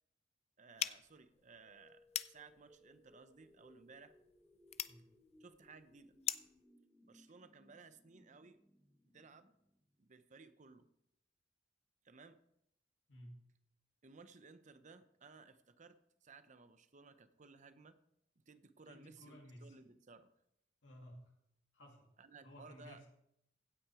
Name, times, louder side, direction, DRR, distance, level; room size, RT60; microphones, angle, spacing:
voice 1, 0.6-2.0 2.3-4.1 5.4-6.2 7.0-8.6 9.0-9.5 10.0-10.9 12.0-12.4 14.0-18.0 18.4-20.3 22.2-23.0, right 4 dB, 40° right, 11 dB, 0.7 m, -59 dB
sound 1, 0.8-6.6, left 10 dB, 35° left, 0.4 m, -45 dB
sound 2, 1.3-10.2, left 1 dB, ahead, 1.1 m, -67 dB
voice 2, 13.1-13.5 18.9-19.8 20.8-21.3 21.7-22.1 22.4-23.1, equal, 75° left, 0 dB, 2.4 m, -56 dB
16.0 x 6.0 x 4.8 m, 0.78 s
head